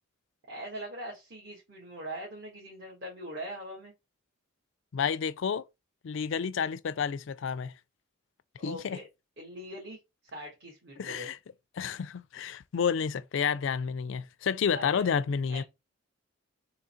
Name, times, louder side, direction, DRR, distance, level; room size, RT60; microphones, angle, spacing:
voice 1, 0.5-3.9 8.6-9.1 9.4-11.3 14.7-15.1 15.5-15.6, right 1 dB, 55° right, 1.5 m, -42 dB
voice 2, 4.9-5.6 6.0-7.7 8.6-9.0 11.0-11.4 11.8-15.6, left 6 dB, 60° left, 0.4 m, -30 dB
3.8 x 3.0 x 4.3 m
head